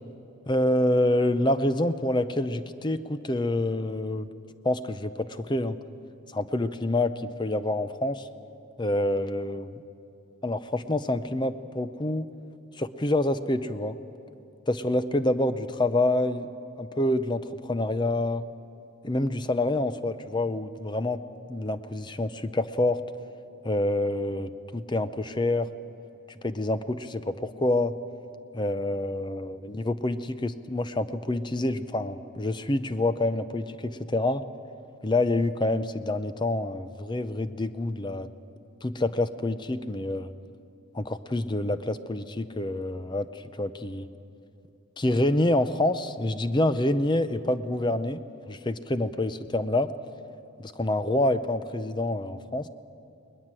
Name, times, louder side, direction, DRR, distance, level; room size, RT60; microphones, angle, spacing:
voice 1, 0.5-4.3 4.6-5.8 6.3-8.3 8.8-9.8 10.4-12.3 12.8-14.0 14.7-16.5 16.8-18.4 19.0-21.2 21.5-23.0 23.6-25.7 26.4-28.0 28.5-34.4 35.0-38.3 38.8-40.3 40.9-44.1 45.0-48.2 48.5-49.9 50.6-52.7, left 1 dB, 20° left, 12 dB, 0.6 m, -27 dB
21.0 x 20.5 x 7.5 m, 2.7 s
head